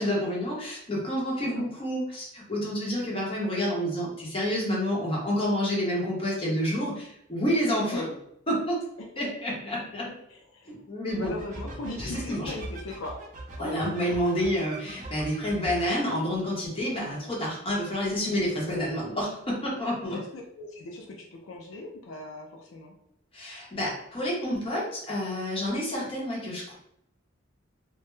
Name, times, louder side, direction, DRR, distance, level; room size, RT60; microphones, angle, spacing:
voice 1, 0.0-8.0 8.5-8.8 9.2-10.1 10.7-11.3 12.0-12.5 13.6-20.2 23.3-26.8, equal, 30° left, -4 dB, 0.8 m, -29 dB
voice 2, 10.3-10.7 11.1-13.2 13.6-13.8 20.0-22.9, left 2 dB, 85° left, 1 dB, 0.4 m, -39 dB
sound 1, 11.1-16.2, right 1 dB, 40° right, 0.5 m, -41 dB
2.2 x 2.0 x 3.0 m, 0.75 s
head